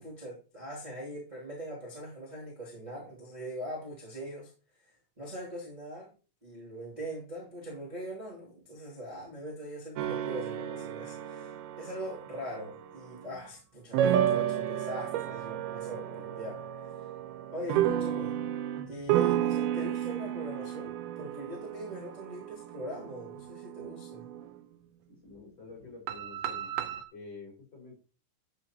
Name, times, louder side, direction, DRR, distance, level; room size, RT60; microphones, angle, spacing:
voice 1, 0.0-4.5 5.2-6.1 6.4-16.6 17.5-18.3 18.9-24.3, equal, 15° right, -7 dB, 1.7 m, -41 dB
sound 1, 10.0-13.4 13.9-24.6 26.1-27.0, right 11 dB, 85° right, 2.2 m, -32 dB
voice 2, 25.1-26.7 27.1-28.0, left 3 dB, 25° left, -2 dB, 5.0 m, -48 dB
12.0 x 6.9 x 2.9 m, 0.35 s
omnidirectional pair, 5.5 m